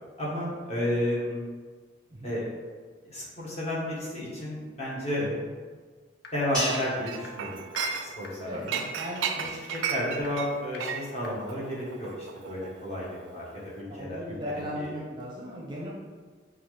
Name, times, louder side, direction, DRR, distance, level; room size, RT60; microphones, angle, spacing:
voice 1, 0.2-1.4 2.2-2.4 3.0-5.3 6.3-7.7 8.0-8.8 9.3-14.4 14.8-14.9, left 1 dB, 35° left, -6 dB, 1.0 m, -32 dB
sound 1, 6.2-6.3 6.7-6.8 7.2-7.3 7.7-7.8 8.2-8.3 8.7-8.8 9.2-9.3 9.7-9.8 10.2-10.3 10.7-10.8 11.2-11.3, left 5 dB, 60° left, 0.5 m, -44 dB
sound 2, 6.5-9.0, equal, 5° left, 1.2 m, -36 dB
Chink clink, 7.1-8.3 8.7-13.3 13.6-13.8, right 6 dB, 85° right, 0.4 m, -34 dB
voice 2, 8.4-9.3 9.9-10.0 13.9-15.9, equal, 25° right, -4 dB, 0.6 m, -37 dB
5.4 x 2.4 x 3.2 m, 1.5 s
head